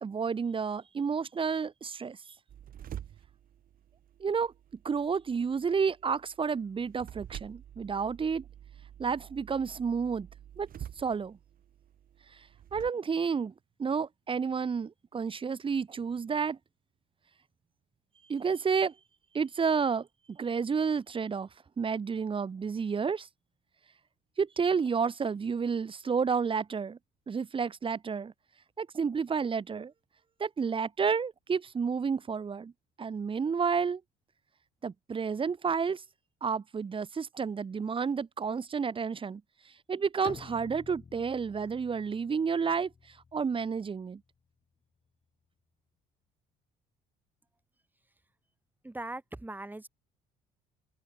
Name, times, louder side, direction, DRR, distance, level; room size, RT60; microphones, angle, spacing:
voice 1, 0.0-2.2 4.2-4.5 4.8-8.4 9.0-10.3 10.6-10.7 11.0-11.4 12.7-13.5 13.8-16.6 18.3-18.9 19.3-21.5 21.8-23.3 24.4-27.0 27.3-28.3 28.8-29.9 30.4-32.7 33.0-34.0 34.8-36.0 36.4-39.4 39.9-42.9 43.3-44.2, right 6 dB, 30° right, 2.3 m, -30 dB
sound 1, 2.5-12.9, right 10 dB, 55° right, 7.8 m, -49 dB
Bowed string instrument, 40.2-44.2, left 5 dB, 30° left, 6.0 m, -50 dB
voice 2, 48.8-49.9, right 2 dB, 10° right, 6.6 m, -40 dB
open air
cardioid pair, 110°, 17 cm